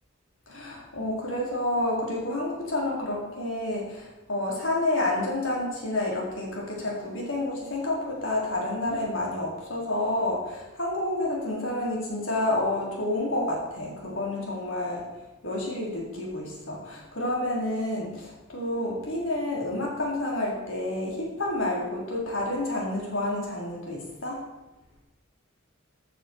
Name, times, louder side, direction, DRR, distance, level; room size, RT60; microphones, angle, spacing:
voice 1, 0.5-15.0 15.4-24.4, left 1 dB, 70° left, -3 dB, 3.9 m, -29 dB
14.5 x 9.5 x 4.6 m, 1.0 s
head